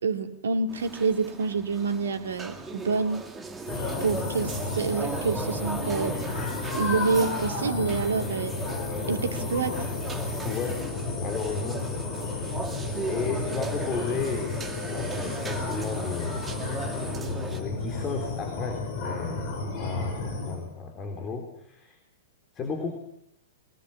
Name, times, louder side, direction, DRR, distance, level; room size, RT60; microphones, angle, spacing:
voice 1, 0.0-3.3 4.0-6.3 6.7-8.5 9.1-9.9, right 4 dB, 70° right, 7 dB, 2.5 m, -27 dB
sound 1, 0.7-17.6, right 3 dB, 15° right, 2.5 m, -38 dB
sound 2, 3.7-20.6, left 3 dB, 40° left, 7.6 m, -32 dB
voice 2, 10.4-10.8 11.2-11.8 12.5-12.6 13.1-14.6 14.9-16.6 17.5-22.0 22.5-22.9, left 5 dB, 25° left, 3 dB, 3.9 m, -34 dB
24.5 x 19.5 x 7.4 m, 0.79 s
figure-of-eight pair, 105°, 0 cm